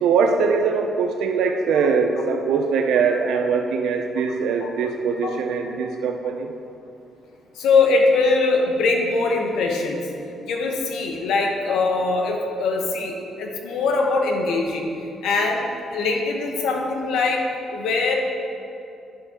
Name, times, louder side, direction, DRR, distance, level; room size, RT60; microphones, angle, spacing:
voice 1, 0.0-6.5, right 5 dB, 80° right, 4 dB, 0.4 m, -22 dB
voice 2, 7.5-10.0 10.5-14.9 15.2-15.6 15.9-18.1, left 3 dB, 80° left, 1 dB, 1.0 m, -22 dB
11.0 x 5.6 x 2.8 m, 2.7 s
cardioid pair, 90°, 0 cm